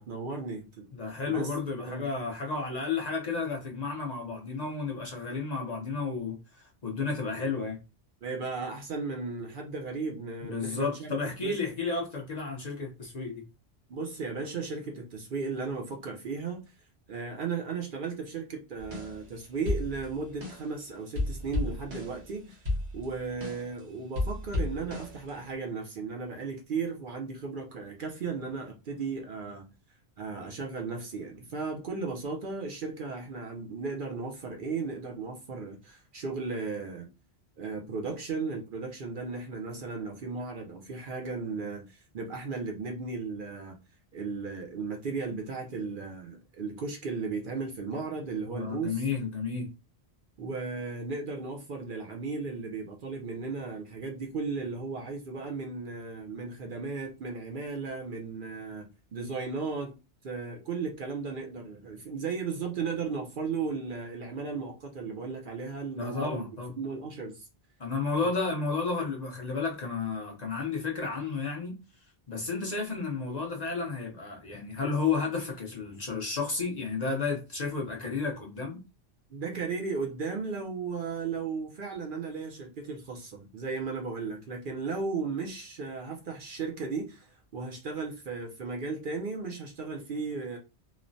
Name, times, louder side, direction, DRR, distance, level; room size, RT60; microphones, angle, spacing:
voice 1, 0.0-0.9 1.3-1.5 1.8-2.1 4.9-5.0 8.2-11.1 11.4-11.6 13.9-16.6 17.1-22.6 22.9-29.7 30.2-37.1 37.6-43.8 44.1-49.0 50.4-59.9 60.2-66.5 66.8-67.5 68.2-68.4 79.3-90.6, right 4 dB, 60° right, 0.6 m, -35 dB
voice 2, 0.9-7.8 10.4-13.4 48.5-49.7 66.0-66.7 67.8-71.8 72.3-78.8, left 4 dB, 45° left, 0.7 m, -32 dB
sound 1, 18.8-19.4 19.7-20.8 21.2-23.8 24.2-25.5, left 2 dB, 85° right, 1.2 m, -33 dB
3.0 x 2.1 x 2.5 m
omnidirectional pair, 1.1 m